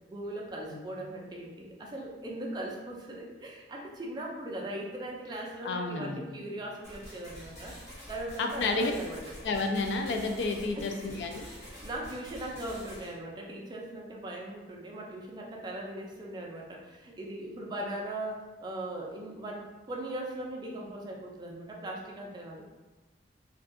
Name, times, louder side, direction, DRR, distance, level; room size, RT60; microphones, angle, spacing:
voice 1, 0.1-9.3 10.7-11.2 11.5-22.6, right 1 dB, 25° right, -1 dB, 0.3 m, -39 dB
voice 2, 5.6-6.2 8.4-8.9 9.4-11.4, left 3 dB, 70° left, 4 dB, 0.3 m, -30 dB
sound 1, 6.8-13.1, equal, 40° left, 0.9 m, -47 dB
2.5 x 2.2 x 2.4 m, 1.1 s
head